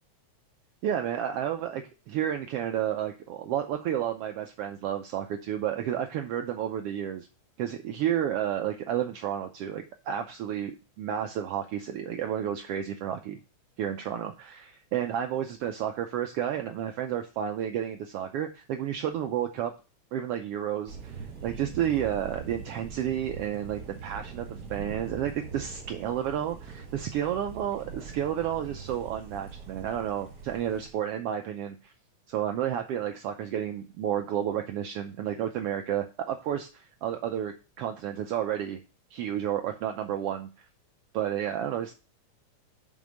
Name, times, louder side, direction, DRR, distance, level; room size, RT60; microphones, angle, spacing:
voice 1, 0.8-7.3 7.6-13.4 13.8-19.7 20.1-31.9 32.3-38.8 39.1-40.7 41.1-41.9, right 10 dB, 80° right, 6 dB, 1.3 m, -31 dB
Thunder, 20.9-30.9, right 6 dB, 40° right, 1.9 m, -42 dB
5.9 x 5.5 x 6.3 m, 0.33 s
omnidirectional pair, 3.4 m